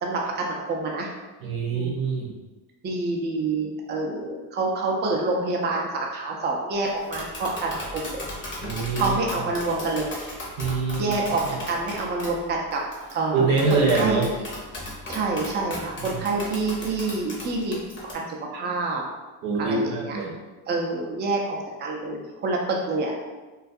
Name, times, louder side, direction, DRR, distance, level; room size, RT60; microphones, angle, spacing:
voice 1, 0.0-1.1 1.7-2.0 2.8-8.3 9.0-10.1 11.0-12.8 13.1-14.4 15.1-17.8 18.1-19.0 19.6-20.2 20.7-23.1, right 3 dB, 25° right, -1 dB, 0.4 m, -27 dB
voice 2, 1.4-2.3 8.6-9.2 10.6-11.1 13.3-14.3 16.1-16.2 19.4-20.3, right 4 dB, 90° right, -1 dB, 0.7 m, -24 dB
Tap, 6.9-18.1, left 1 dB, 25° left, 0.7 m, -36 dB
2.3 x 2.3 x 2.5 m, 1.2 s
supercardioid pair, 90°, 48 cm